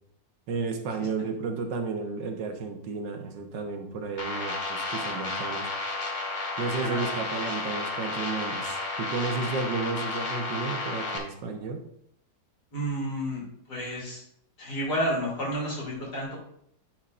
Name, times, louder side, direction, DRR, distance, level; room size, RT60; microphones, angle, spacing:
voice 1, 0.5-5.7 6.6-11.8, right 4 dB, 85° right, 4 dB, 1.7 m, -32 dB
sound 1, 4.2-11.2, left 3 dB, 30° left, 1.3 m, -32 dB
voice 2, 6.7-7.1 12.7-14.2 14.6-16.4, equal, 65° left, -3 dB, 3.4 m, -31 dB
10.5 x 6.3 x 2.5 m, 0.70 s
omnidirectional pair, 1.9 m